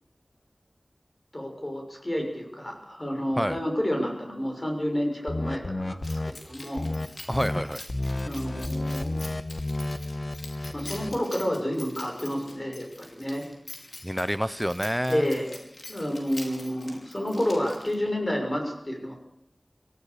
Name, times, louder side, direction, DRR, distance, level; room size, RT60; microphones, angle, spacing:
voice 1, 1.3-6.9 8.2-9.2 10.7-13.4 15.1-15.6 15.9-19.1, equal, 35° left, 3 dB, 6.5 m, -30 dB
sound 1, 5.3-6.3 6.8-7.1 7.3-7.6 7.9-11.2, left 2 dB, 50° left, 1.4 m, -31 dB
Keys jangling, 6.0-18.2, left 1 dB, 70° left, 5.3 m, -45 dB
voice 2, 7.3-7.8 14.0-15.3, equal, ahead, 12 dB, 0.9 m, -27 dB
25.0 x 17.0 x 6.9 m, 0.80 s
wide cardioid pair, 50°, 0 cm